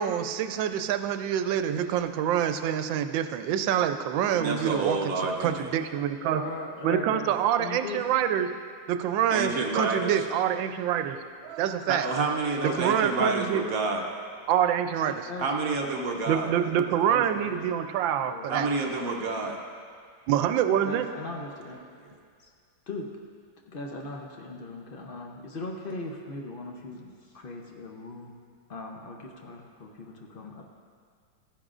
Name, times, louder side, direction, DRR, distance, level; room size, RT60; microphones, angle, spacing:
voice 1, 0.0-5.0 5.4-6.4 6.8-8.5 8.9-12.1 12.8-13.6 14.5-15.2 16.3-18.7 20.3-21.0, right 9 dB, 90° right, 9 dB, 1.3 m, -26 dB
voice 2, 4.3-5.7 9.3-10.2 11.9-14.0 15.4-16.5 18.5-19.6 22.1-22.2, right 3 dB, 60° right, 1 dB, 1.1 m, -29 dB
voice 3, 6.3-8.0 12.6-13.4 15.1-17.6 18.2-19.3 20.8-21.8 22.4-22.5 22.9-23.1 23.6-28.3 28.7-30.6, left 2 dB, 75° left, 0 dB, 0.5 m, -39 dB
14.5 x 10.0 x 2.5 m, 2.1 s
omnidirectional pair, 2.0 m